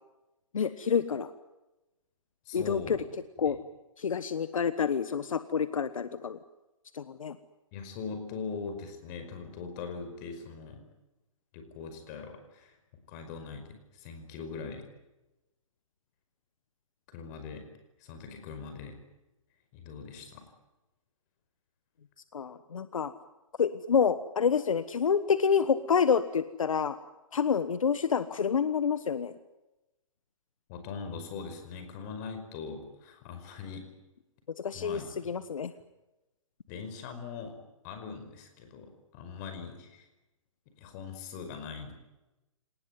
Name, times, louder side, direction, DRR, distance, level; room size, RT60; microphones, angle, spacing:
voice 1, 0.5-1.3 2.5-3.0 3.4-3.6 4.0-6.4 6.9-7.3 22.3-23.1 23.6-27.0 27.3-29.3 34.6-35.0 35.3-35.7, left 6 dB, 80° left, 13 dB, 1.3 m, -28 dB
voice 2, 2.5-3.1 3.4-3.6 7.7-10.8 11.5-12.8 13.1-14.9 17.1-17.7 18.0-19.0 19.7-20.5 30.7-33.9 34.7-35.3 36.7-37.6 37.8-40.1 40.8-41.9, left 5 dB, 35° left, 7 dB, 5.3 m, -41 dB
26.5 x 19.5 x 9.5 m, 1.0 s
hypercardioid pair, 145°, 17 cm